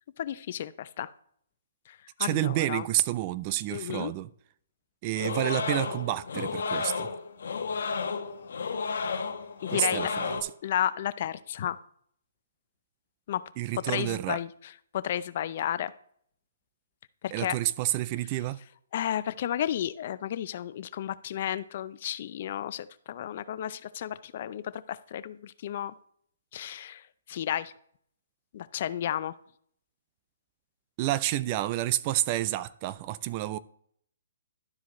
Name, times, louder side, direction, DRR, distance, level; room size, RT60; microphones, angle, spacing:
voice 1, 0.2-1.1 1.9-2.8 3.7-4.1 9.6-10.1 10.6-11.8 13.3-13.4 13.9-15.9 17.2-17.6 18.9-25.9 26.5-27.0 27.3-27.7 28.5-29.3, left 11 dB, 50° left, 0.4 m, -32 dB
voice 2, 2.2-4.3 5.0-7.1 9.7-10.5 13.6-14.4 17.3-18.6 31.0-33.6, right 15 dB, 30° right, 0.3 m, -29 dB
sound 1, 5.1-10.4, left 5 dB, 70° left, 1.0 m, -32 dB
12.0 x 4.8 x 3.0 m
hypercardioid pair, 150°, 0 cm